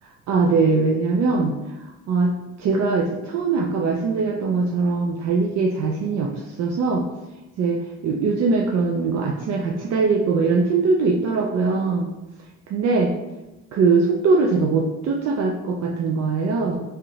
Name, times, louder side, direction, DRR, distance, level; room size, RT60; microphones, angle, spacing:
voice 1, 0.0-1.5 2.1-7.1 7.6-12.1 12.7-13.1 13.7-16.8, right 4 dB, 60° right, 0 dB, 0.4 m, -21 dB
3.4 x 2.8 x 2.4 m, 0.99 s
cardioid pair, 90°, 30 cm